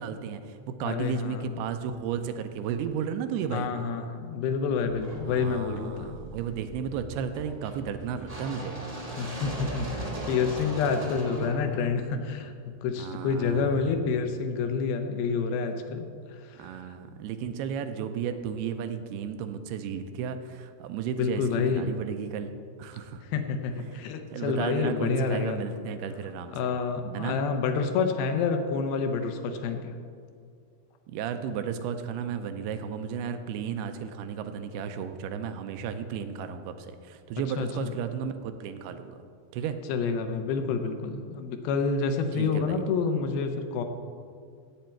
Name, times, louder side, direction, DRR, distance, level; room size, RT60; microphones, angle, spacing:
voice 1, 0.0-3.7 5.3-8.8 13.0-13.9 16.6-22.5 22.8-23.2 24.3-26.5 27.1-27.4 31.1-39.2 39.5-39.8 42.4-42.8, right 7 dB, 85° right, 8 dB, 2.7 m, -33 dB
voice 2, 0.8-1.5 3.5-6.2 9.2-12.5 12.8-16.8 21.2-21.9 23.3-25.6 26.5-29.9 37.6-37.9 39.9-43.8, left 5 dB, 75° left, 6 dB, 2.6 m, -28 dB
sound 1, 4.9-12.9, right 1 dB, 45° right, 0.4 m, -39 dB
15.5 x 8.5 x 4.5 m, 2.2 s
omnidirectional pair, 4.6 m